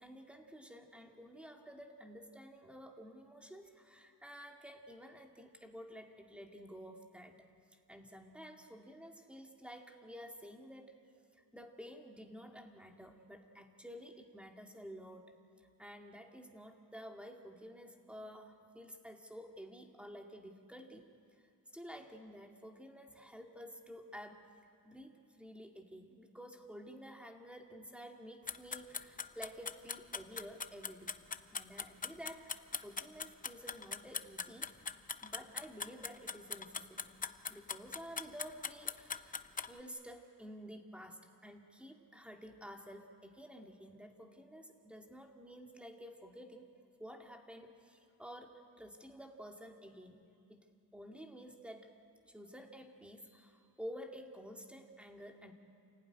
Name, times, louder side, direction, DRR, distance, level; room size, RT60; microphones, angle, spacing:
voice 1, 0.0-7.4 7.9-10.9 11.3-21.1 21.7-24.4 24.8-31.1 31.5-34.7 35.2-37.1 37.5-39.4 39.7-46.7 47.0-50.2 50.5-50.6 50.9-51.9 52.3-55.5, equal, 5° right, 3 dB, 2.2 m, -51 dB
sound 1, 28.5-39.7, left 5 dB, 25° left, 0.7 m, -41 dB
28.0 x 17.5 x 9.9 m, 2.5 s
cardioid pair, 125°, 35 cm